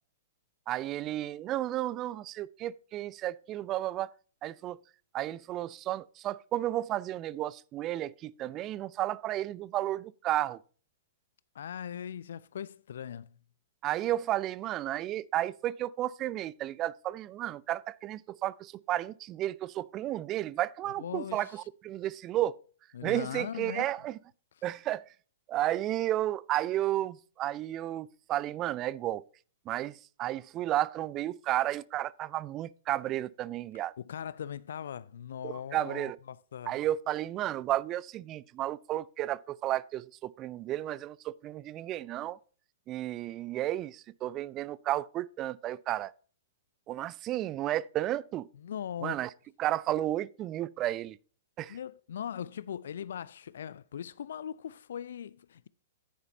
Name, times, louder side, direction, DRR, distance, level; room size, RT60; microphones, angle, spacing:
voice 1, 0.7-4.1 4.4-4.8 5.1-10.6 13.8-22.5 23.0-24.2 24.6-25.1 25.5-29.2 29.7-33.9 35.4-36.2 36.7-42.4 42.9-46.1 46.9-48.5 49.0-49.3 49.6-51.2 51.6-51.8, right 13 dB, 25° right, 0.4 m, -32 dB
voice 2, 11.5-13.3 20.8-21.6 22.9-23.9 34.0-36.8 48.6-49.3 51.7-55.7, left 9 dB, 60° left, 0.3 m, -40 dB
10.0 x 9.6 x 2.7 m
figure-of-eight pair, 110°, 0 cm